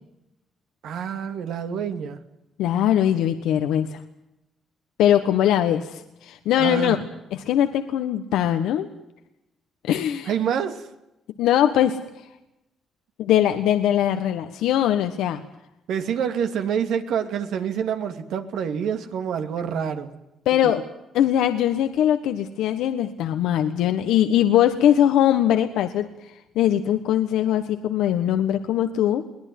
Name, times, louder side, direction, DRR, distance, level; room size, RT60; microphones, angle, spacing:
voice 1, 0.8-2.2 6.6-7.0 10.3-10.9 15.9-20.1 20.6-20.7, right 8 dB, 80° right, 7 dB, 2.5 m, -27 dB
voice 2, 2.6-4.0 5.0-7.0 7.3-8.9 9.8-10.3 11.4-12.0 13.2-15.4 20.4-20.8 21.1-29.3, left 11 dB, 90° left, 8 dB, 1.3 m, -21 dB
22.5 x 18.5 x 9.5 m, 0.91 s
cardioid pair, 90°, 0 cm